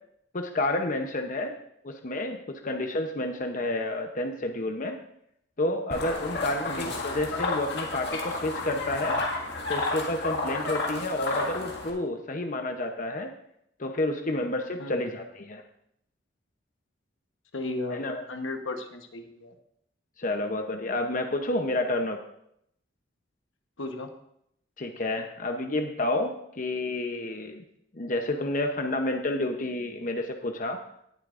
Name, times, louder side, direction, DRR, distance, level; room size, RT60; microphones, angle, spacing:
voice 1, 0.3-1.5 1.8-5.0 5.6-9.2 9.7-13.3 13.8-15.6 17.9-18.2 20.2-22.2 24.8-27.6 27.9-30.8, left 2 dB, 45° left, 4 dB, 0.8 m, -30 dB
sound 1, 5.9-11.9, left 2 dB, 60° left, 2.0 m, -31 dB
voice 2, 17.5-19.6 23.8-24.1, left 2 dB, 80° left, 5 dB, 1.2 m, -35 dB
18.5 x 8.2 x 2.5 m, 0.74 s
head